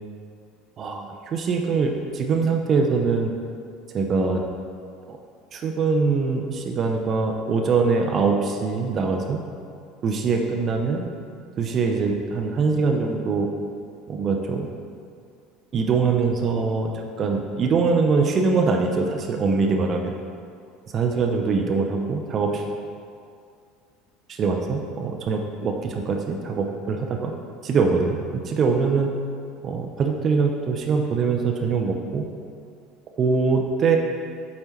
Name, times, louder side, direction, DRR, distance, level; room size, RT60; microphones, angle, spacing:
voice 1, 0.8-3.3 3.9-4.4 5.1-5.2 5.5-9.4 10.0-11.1 11.6-13.5 14.1-14.7 15.7-16.9 17.2-20.1 20.9-22.6 24.3-27.3 27.6-29.1 29.6-32.2 33.2-34.0, right 4 dB, 35° right, 3 dB, 0.6 m, -23 dB
8.1 x 4.4 x 4.4 m, 2.3 s
figure-of-eight pair, 65°, 0 cm